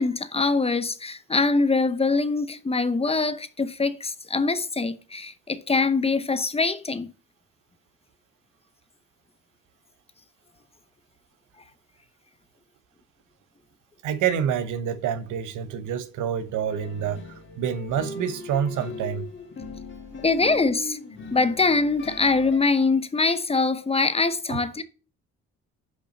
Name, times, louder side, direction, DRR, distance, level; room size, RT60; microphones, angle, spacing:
voice 1, 0.0-7.1 20.2-21.0 21.3-24.8, left 3 dB, 20° left, 0.8 m, -23 dB
voice 2, 14.0-17.2 17.6-19.3 24.5-24.6, right 8 dB, 85° right, 0.9 m, -27 dB
sound 1, 16.7-22.6, left 3 dB, 40° left, 1.7 m, -39 dB
5.9 x 5.1 x 4.1 m
cardioid pair, 90°, 30 cm